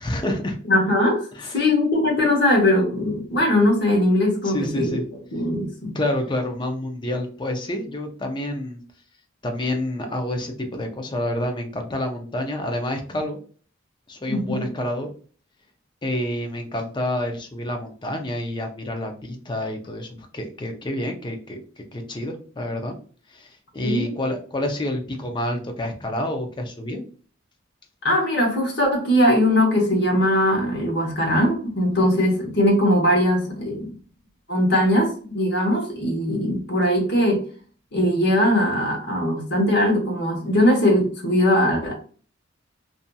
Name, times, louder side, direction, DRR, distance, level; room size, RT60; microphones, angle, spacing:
voice 1, 0.0-0.6 1.3-1.7 4.4-5.0 5.9-8.8 9.4-13.4 14.1-15.1 16.0-21.6 21.9-23.0 23.3-27.0, left 1 dB, 20° left, 4 dB, 0.5 m, -28 dB
voice 2, 0.7-1.3 1.5-4.9 5.3-6.0 14.3-14.7 23.8-24.1 28.0-33.9 34.5-37.4 37.9-42.0, left 1 dB, 55° left, 0 dB, 1.0 m, -20 dB
2.6 x 2.6 x 2.2 m, 0.42 s
head